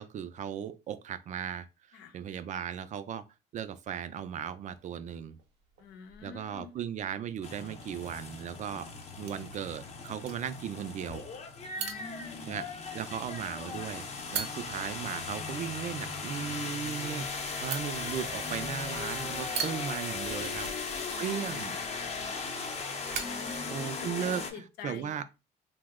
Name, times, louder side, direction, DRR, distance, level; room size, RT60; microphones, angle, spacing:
voice 1, 0.0-3.2 3.5-5.4 6.2-8.9 9.2-11.2 12.5-12.6 12.9-14.1 14.3-20.7 21.2-21.8 23.7-25.2, right 8 dB, 45° right, 0.4 m, -37 dB
sound 1, 4.6-24.3, right 7 dB, 80° right, 0.7 m, -45 dB
voice 2, 5.8-6.7 11.8-12.6 20.2-21.0 23.2-25.2, left 5 dB, 85° left, 0.7 m, -46 dB
sound 2, 7.4-24.5, left 4 dB, 40° left, 0.7 m, -37 dB
2.8 x 2.0 x 3.6 m
cardioid pair, 110°, 17 cm